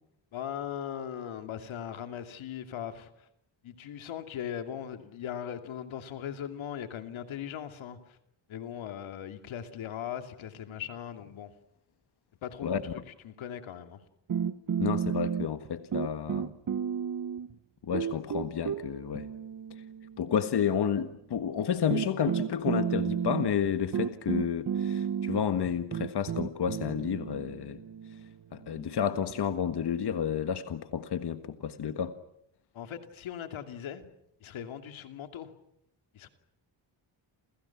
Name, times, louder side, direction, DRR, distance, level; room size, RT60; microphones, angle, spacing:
voice 1, 0.3-3.3 3.6-8.2 8.5-11.5 12.4-12.8 13.2-14.0 32.7-34.0 34.4-35.5 36.1-36.3, left 9 dB, 90° left, 7 dB, 2.7 m, -39 dB
sound 1, 14.3-15.7 15.9-17.5 17.9-20.4 21.4-21.5 21.9-29.4, right 7 dB, 45° right, 1.2 m, -32 dB
voice 2, 14.8-16.5 17.8-19.3 19.7-19.8 20.2-27.8 28.1-28.2 28.5-32.1, left 8 dB, 55° left, 9 dB, 1.6 m, -31 dB
29.5 x 29.0 x 6.0 m, 0.75 s
cardioid pair, 100°, 46 cm